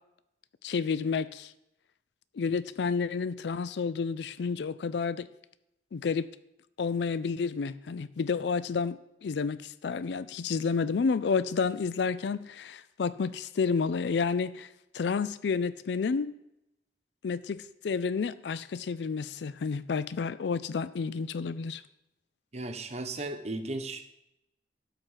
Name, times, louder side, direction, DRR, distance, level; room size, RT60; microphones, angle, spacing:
voice 1, 0.6-1.5 2.4-5.3 5.9-6.3 6.8-16.3 17.2-21.8, left 5 dB, 75° left, 15 dB, 0.4 m, -30 dB
voice 2, 22.5-24.1, right 2 dB, 40° right, 7 dB, 0.9 m, -36 dB
12.5 x 4.4 x 7.9 m, 0.86 s
head